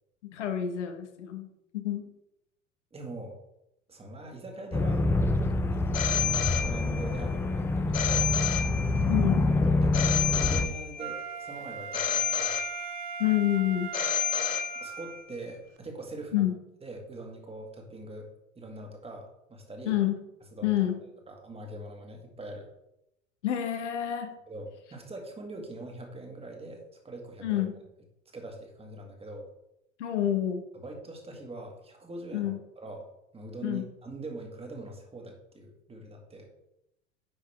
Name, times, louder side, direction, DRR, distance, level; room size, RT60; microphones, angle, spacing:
voice 1, 0.2-1.5 1.7-2.0 9.1-9.4 13.2-13.9 16.3-16.6 19.8-20.2 20.6-21.0 23.4-24.3 27.4-27.8 30.0-30.6 32.3-32.6 33.6-33.9, left 12 dB, 65° left, 6 dB, 1.2 m, -28 dB
voice 2, 2.9-3.4 3.9-5.1 5.7-6.0 6.5-8.3 9.6-12.5 14.8-16.4 16.8-18.3 18.6-20.0 20.5-20.7 21.3-22.7 24.5-27.6 28.3-29.5 30.7-36.5, right 2 dB, 15° right, 2 dB, 1.9 m, -42 dB
sound 1, 4.7-10.7, left 2 dB, 5° left, 0.4 m, -26 dB
Telephone, 5.9-7.2 7.9-9.2 9.9-11.2 11.9-13.2 13.9-15.2, left 8 dB, 85° left, 0.6 m, -30 dB
Wind instrument woodwind instrument, 11.0-15.3 15.8-15.9, right 7 dB, 50° right, 1.1 m, -39 dB
10.0 x 5.6 x 3.5 m, 0.84 s
figure-of-eight pair, 80°, 38 cm